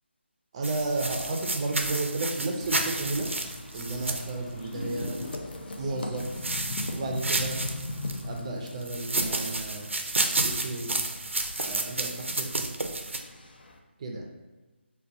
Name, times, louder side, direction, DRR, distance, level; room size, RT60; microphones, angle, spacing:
voice 1, 0.5-3.3 3.7-5.2 5.8-6.3 6.9-7.6 8.2-9.9 10.4-11.0 11.6-12.7 14.0-14.3, right 2 dB, 30° right, 2 dB, 0.4 m, -32 dB
sound 1, 0.6-13.8, left 2 dB, 50° left, 0.4 m, -41 dB
sound 2, 0.6-5.4 6.2-8.2 8.8-13.2, right 2 dB, 90° right, 0.4 m, -31 dB
sound 3, 2.6-8.4, left 1 dB, 25° left, 0.8 m, -46 dB
5.0 x 2.2 x 2.7 m, 1.2 s
figure-of-eight pair, 155°, 6 cm